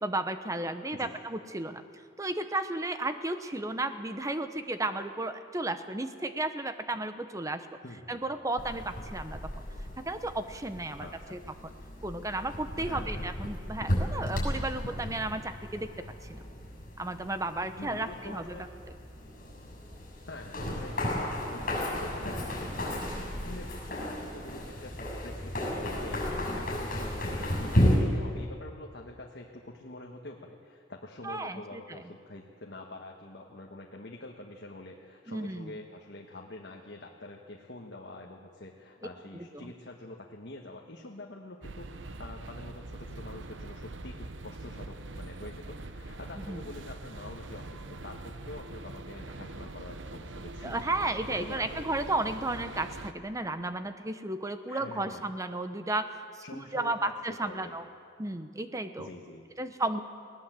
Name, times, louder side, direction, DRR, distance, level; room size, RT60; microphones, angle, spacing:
voice 1, 0.0-1.8 2.2-7.7 8.1-9.4 10.0-11.7 12.0-15.9 16.2-16.4 17.0-18.6 31.2-32.0 35.3-35.7 39.3-39.7 46.5-46.6 50.6-56.1 56.3-57.8 58.2-59.1 59.6-60.0, right 2 dB, 15° right, 10 dB, 0.9 m, -33 dB
voice 2, 7.8-8.3 11.0-11.4 12.8-13.3 17.8-18.6 20.3-24.9 25.2-50.9 51.3-51.9 54.7-55.3 56.4-57.8 59.0-59.4, left 2 dB, 65° left, 0 dB, 1.4 m, -46 dB
sound 1, 8.6-28.0, equal, 45° left, 7.1 m, -34 dB
sound 2, 41.6-53.1, right 2 dB, 90° right, 1.0 m, -43 dB
20.0 x 18.0 x 7.6 m, 2.3 s
head